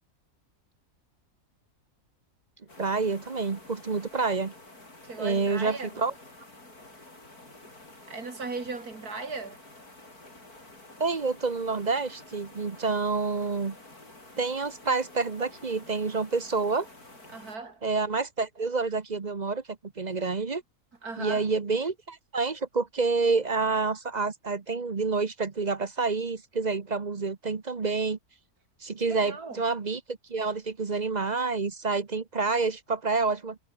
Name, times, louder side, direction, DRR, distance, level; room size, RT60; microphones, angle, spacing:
sound 1, 2.7-17.6, left 2 dB, 70° left, 7.7 m, -50 dB
voice 1, 2.8-4.5 5.2-6.1 11.0-13.8 14.4-16.9 17.8-20.6 21.2-28.2 28.8-33.6, right 4 dB, 30° right, 1.0 m, -28 dB
voice 2, 5.0-6.0 8.1-9.6 17.3-17.8 21.0-21.5 29.0-29.6, right 4 dB, 70° right, 3.9 m, -37 dB
omnidirectional pair, 1.7 m